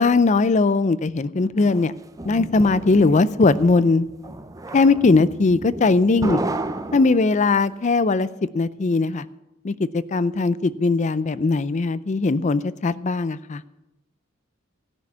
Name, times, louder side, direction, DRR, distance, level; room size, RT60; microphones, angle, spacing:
voice 1, 0.0-1.9 2.2-4.1 4.7-6.4 6.9-8.3 8.5-9.2 9.6-13.6, left 3 dB, 35° left, 16 dB, 0.4 m, -19 dB
sound 1, 1.7-7.6, right 2 dB, 15° right, 0.6 m, -32 dB
15.0 x 6.4 x 8.1 m, 0.95 s
head